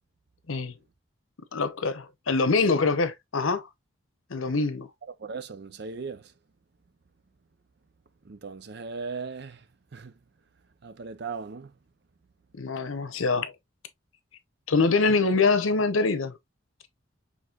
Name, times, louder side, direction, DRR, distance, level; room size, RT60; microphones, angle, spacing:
voice 1, 1.5-3.7 4.3-4.9 12.6-13.5 14.7-16.4, left 4 dB, 85° left, 0.9 m, -24 dB
voice 2, 5.2-6.3 8.2-9.6 9.9-10.1 10.8-11.7, right 5 dB, 55° right, 0.5 m, -37 dB
6.1 x 3.2 x 2.3 m
head